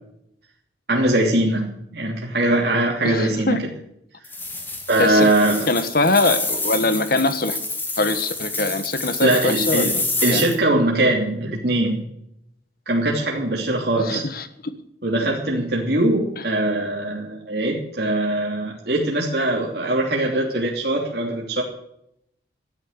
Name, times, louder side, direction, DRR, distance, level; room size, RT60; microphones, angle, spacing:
voice 1, 0.9-3.6 4.9-5.6 9.2-9.9 10.2-12.0 12.9-14.3 15.0-21.6, right 1 dB, 55° right, -2 dB, 3.1 m, -21 dB
voice 2, 3.0-3.7 5.0-5.3 5.7-7.6 8.0-10.0 10.3-10.4 14.0-14.5 16.4-16.5, left 2 dB, 50° left, 11 dB, 1.4 m, -22 dB
sound 1, 4.2-10.5, left 2 dB, 10° left, 2.4 m, -28 dB
13.5 x 12.0 x 6.7 m, 0.76 s
head